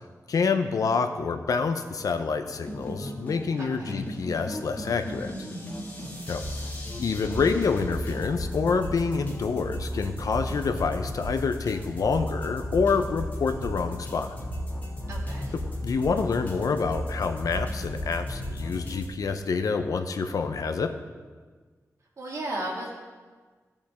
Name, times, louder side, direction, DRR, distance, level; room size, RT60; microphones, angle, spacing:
voice 1, 0.3-5.3 6.3-6.4 7.0-14.3 15.8-20.9, left 5 dB, 80° left, 7 dB, 0.6 m, -27 dB
sound 1, 2.5-19.1, left 1 dB, 30° left, 1.7 m, -34 dB
voice 2, 3.6-4.0 15.1-15.5 22.2-22.9, right 1 dB, 60° right, -3 dB, 1.9 m, -35 dB
15.5 x 5.2 x 3.5 m, 1.4 s
wide cardioid pair, 155°, 6 cm